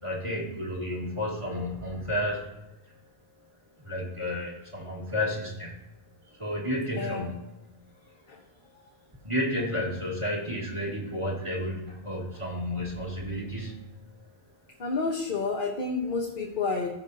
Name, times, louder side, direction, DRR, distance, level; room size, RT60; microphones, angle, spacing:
voice 1, 0.0-2.5 3.8-5.8 6.3-7.5 9.2-13.8, left 1 dB, 30° right, -3 dB, 1.6 m, -31 dB
voice 2, 6.9-7.3 8.3-8.4 14.8-16.9, left 4 dB, 55° left, 0 dB, 1.1 m, -30 dB
15.5 x 5.2 x 2.7 m, 0.98 s
omnidirectional pair, 1.0 m